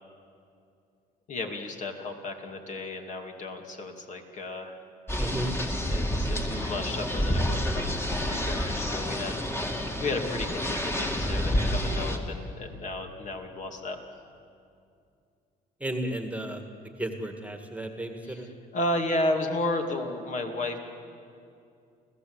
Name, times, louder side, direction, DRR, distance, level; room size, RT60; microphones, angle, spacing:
voice 1, 1.3-4.8 5.8-14.0 18.2-20.8, left 2 dB, 45° left, 3 dB, 2.7 m, -33 dB
sound 1, 5.1-12.2, equal, 15° left, 2.4 m, -29 dB
voice 2, 5.2-5.5 15.8-16.6 17.0-18.5, right 1 dB, 10° right, 5 dB, 1.9 m, -33 dB
30.0 x 15.5 x 8.1 m, 2.4 s
cardioid pair, 110°, 17 cm